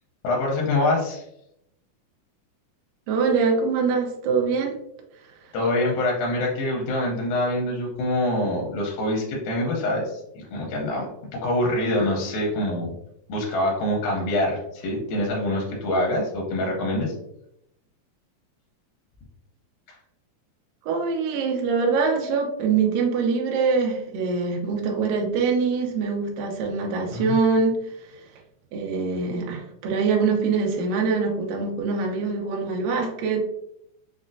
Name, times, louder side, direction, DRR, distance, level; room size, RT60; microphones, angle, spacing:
voice 1, 0.2-1.3 5.5-12.9 13.3-17.1 27.1-27.4, left 1 dB, 85° left, -2 dB, 2.5 m, -25 dB
voice 2, 3.1-4.8 20.8-27.8 28.1-28.2 28.7-33.4, right 4 dB, 75° right, 1 dB, 2.1 m, -24 dB
6.1 x 2.0 x 2.6 m, 0.78 s
omnidirectional pair, 4.2 m